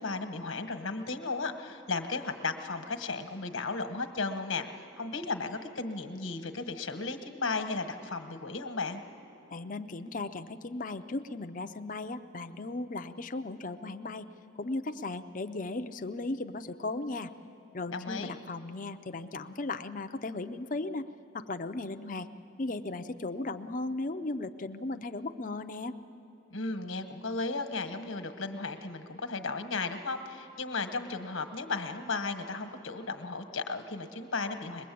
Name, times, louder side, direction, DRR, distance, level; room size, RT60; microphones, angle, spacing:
voice 1, 0.0-9.0 17.9-18.4 26.5-34.9, left 3 dB, 80° left, 7 dB, 1.4 m, -35 dB
voice 2, 9.5-14.3 14.6-17.3 17.7-21.1 21.3-22.3 22.6-26.0, left 2 dB, 40° left, 8 dB, 0.6 m, -36 dB
22.0 x 21.0 x 8.5 m, 2.8 s
head